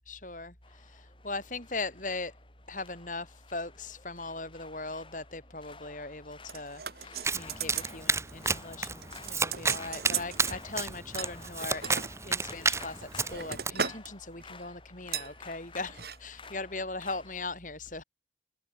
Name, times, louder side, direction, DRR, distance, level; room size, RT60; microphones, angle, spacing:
voice 1, 0.1-2.3 2.7-11.8 12.2-18.0, left 3 dB, 45° left, 6.0 m, -39 dB
sound 1, 0.6-17.5, left 4 dB, 30° left, 7.9 m, -52 dB
sound 2, 6.5-8.0 8.3-8.5 8.8-10.6 11.2-12.1 12.7-14.1 14.4-14.6 15.1-15.3 15.9-16.2 16.4-16.5, right 7 dB, 60° right, 3.5 m, -37 dB
Domestic sounds home sounds, 7.2-13.7, right 4 dB, 15° right, 1.6 m, -32 dB
head